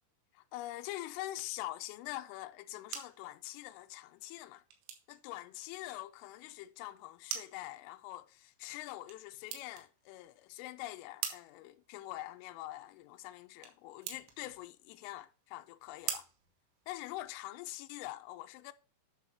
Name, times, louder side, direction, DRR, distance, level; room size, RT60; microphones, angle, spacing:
voice 1, 0.3-4.6 5.1-16.3 16.9-18.7, left 16 dB, 85° left, 3.2 m, -44 dB
sound 1, 2.5-17.4, right 9 dB, 90° right, 4.1 m, -48 dB
11.0 x 6.3 x 2.7 m
omnidirectional pair, 5.8 m